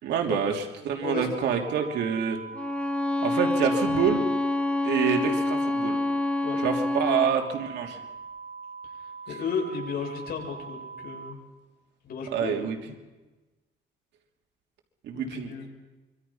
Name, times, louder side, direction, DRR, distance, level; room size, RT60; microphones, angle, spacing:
voice 1, 0.0-2.4 3.2-4.2 4.8-6.0 6.6-8.0 12.3-12.8 15.0-15.5, right 7 dB, 75° right, 3 dB, 3.2 m, -27 dB
sound 1, 1.3-11.3, right 4 dB, 55° right, 2.5 m, -42 dB
Bowed string instrument, 2.5-7.4, left 2 dB, 5° left, 1.1 m, -27 dB
voice 2, 6.2-6.6 7.0-7.4 9.0-11.4 12.0-12.9 15.1-15.7, left 6 dB, 60° left, 0 dB, 7.4 m, -35 dB
25.5 x 25.0 x 5.7 m, 1.1 s
cardioid pair, 130°, 18 cm